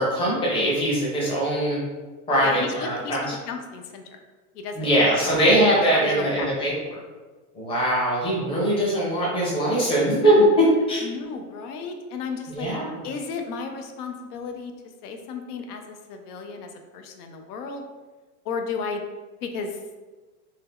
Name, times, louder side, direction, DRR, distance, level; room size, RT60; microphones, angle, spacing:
voice 1, 0.0-1.8 2.3-3.2 4.7-6.7 7.5-11.0 12.5-13.0, right 1 dB, 10° left, -5 dB, 0.6 m, -21 dB
voice 2, 2.4-3.2 3.5-4.2 4.5-5.5 5.9-6.7 11.0-12.7 13.0-14.7 15.0-17.8 18.5-19.0 19.4-19.8, left 5 dB, 80° left, 5 dB, 0.6 m, -34 dB
2.7 x 2.2 x 3.5 m, 1.3 s
supercardioid pair, 150°, 45 cm